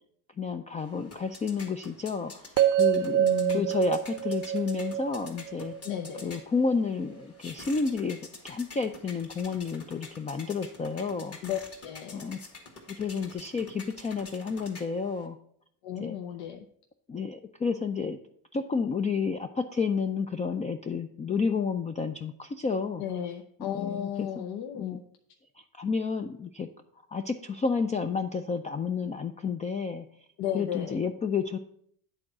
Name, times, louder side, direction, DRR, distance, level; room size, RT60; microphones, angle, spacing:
voice 1, 0.4-2.5 2.8-3.3 3.5-5.7 6.2-8.2 8.4-11.4 12.1-12.4 12.9-15.4 16.0-16.2 17.1-18.2 18.5-23.0 23.7-24.5 24.7-25.0 25.8-26.7 27.1-30.0 30.5-31.6, left 5 dB, 20° left, 7 dB, 0.4 m, -30 dB
sound 1, 0.8-15.3, left 3 dB, 35° left, 1.9 m, -48 dB
sound 2, 2.6-6.7, right 11 dB, 45° right, 0.5 m, -27 dB
voice 2, 3.2-3.7 5.8-6.3 11.4-12.2 15.8-16.7 23.0-25.0 30.4-31.0, left 9 dB, 65° left, 5 dB, 0.8 m, -34 dB
8.5 x 3.9 x 6.0 m, 0.65 s
supercardioid pair, 90°, 43 cm